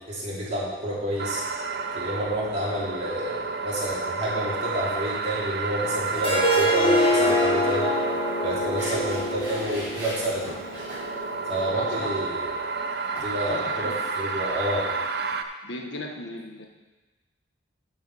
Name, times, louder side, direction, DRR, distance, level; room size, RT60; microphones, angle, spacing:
voice 1, 0.0-1.4 1.9-7.9 8.4-10.6 11.5-12.5 13.2-14.9, equal, 35° right, -6 dB, 2.8 m, -29 dB
sound 1, 1.2-15.4, right 4 dB, 55° right, 0.6 m, -31 dB
Harp, 6.2-11.3, equal, 30° left, 1.3 m, -25 dB
sound 2, 8.7-11.0 13.1-13.3, right 1 dB, 10° right, 3.5 m, -39 dB
voice 2, 11.7-12.3 13.5-14.0 15.6-16.7, left 1 dB, 75° left, 2 dB, 1.2 m, -36 dB
12.0 x 4.8 x 5.5 m, 1.2 s
head